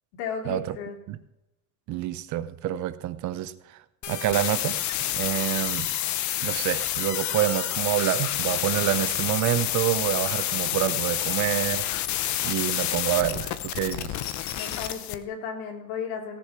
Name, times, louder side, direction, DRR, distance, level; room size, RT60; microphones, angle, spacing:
voice 1, 0.1-1.0 14.5-16.4, left 6 dB, 80° left, 3 dB, 3.2 m, -34 dB
voice 2, 1.9-3.8 4.1-4.8 5.2-5.9 6.4-11.8 12.4-14.2, right 13 dB, 40° right, 14 dB, 0.6 m, -27 dB
sound 1, 4.0-15.1, left 12 dB, 40° left, 0.8 m, -29 dB
17.5 x 6.7 x 6.0 m, 0.90 s
cardioid pair, 165°, 44 cm